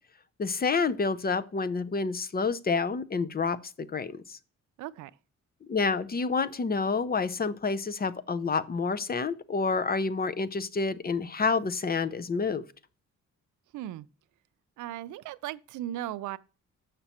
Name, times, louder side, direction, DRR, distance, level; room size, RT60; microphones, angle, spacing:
voice 1, 0.4-3.6 3.9-4.4 5.7-12.6, left 4 dB, 30° left, 0.7 m, -28 dB
voice 2, 4.8-5.1 13.7-14.1 14.8-16.4, right 13 dB, 75° right, 0.5 m, -37 dB
6.6 x 6.0 x 4.3 m
cardioid pair, 75°, 30 cm